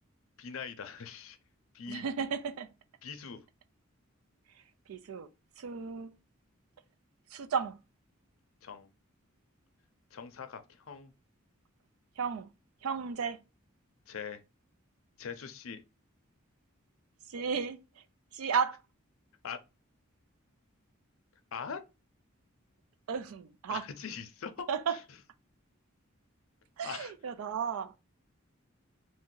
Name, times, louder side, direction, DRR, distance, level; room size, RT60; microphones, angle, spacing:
voice 1, 0.4-1.4 1.7-2.0 3.0-3.4 8.6-8.9 10.1-11.1 14.1-14.4 15.2-15.8 19.4-19.6 21.5-21.8 23.7-25.0 26.8-27.1, left 6 dB, 70° left, 0.5 m, -42 dB
voice 2, 1.9-2.7 4.9-5.3 5.6-6.1 7.3-7.8 12.2-12.5 12.8-13.4 17.3-17.8 18.3-18.8 23.1-23.8 24.7-25.0 26.8-28.0, right 6 dB, 85° right, 0.4 m, -33 dB
2.6 x 2.1 x 3.7 m
head